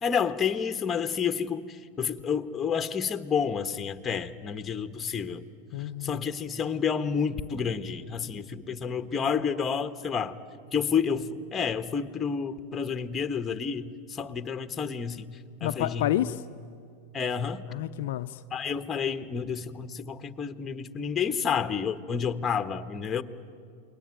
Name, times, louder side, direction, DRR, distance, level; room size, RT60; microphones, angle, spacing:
voice 1, 0.0-5.4 5.8-10.4 10.7-16.1 17.1-17.6 18.5-23.2, left 6 dB, 25° left, 9 dB, 1.4 m, -30 dB
voice 2, 5.7-6.3 15.6-16.4 17.7-18.4, left 13 dB, 65° left, 8 dB, 0.6 m, -29 dB
28.5 x 22.0 x 9.2 m, 2.3 s
hypercardioid pair, 100°, 0 cm